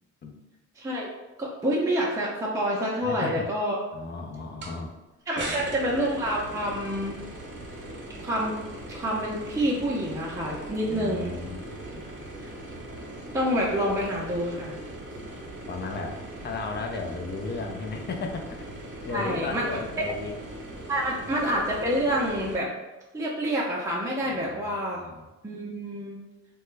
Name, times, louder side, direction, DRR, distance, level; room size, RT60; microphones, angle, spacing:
voice 1, 0.8-1.1 1.4-3.8 5.3-7.2 8.2-8.6 8.9-11.3 13.3-14.7 19.1-19.6 20.0-20.1 20.9-22.7 23.1-25.0 25.4-26.2, equal, 10° right, -5 dB, 0.6 m, -27 dB
voice 2, 3.0-3.5 3.9-4.9 5.4-5.7 10.9-11.6 15.7-18.6 19.1-20.4 21.2-21.3 24.2-25.3, left 3 dB, 35° left, 3 dB, 0.5 m, -35 dB
sound 1, 4.6-4.7 5.4-22.6, right 1 dB, 40° right, 1.0 m, -40 dB
2.9 x 2.2 x 3.2 m, 1.0 s
cardioid pair, 90°, 30 cm